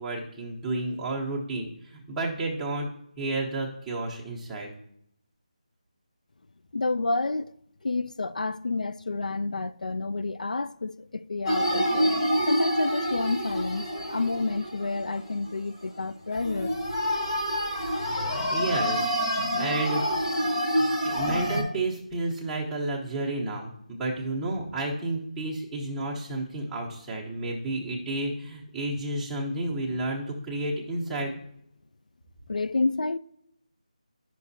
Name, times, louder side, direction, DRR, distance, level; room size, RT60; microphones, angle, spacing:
voice 1, 0.0-2.9 3.2-4.7 18.5-20.0 20.8-31.4, right 2 dB, 5° right, 1.0 m, -31 dB
voice 2, 6.7-7.5 7.8-12.1 12.5-16.7 18.0-18.1 32.5-33.2, left 3 dB, 80° left, 0.3 m, -29 dB
sound 1, 11.5-15.5 15.8-16.0 16.3-21.6, equal, 45° left, 1.8 m, -27 dB
10.0 x 6.1 x 2.7 m
figure-of-eight pair, 165°, 4 cm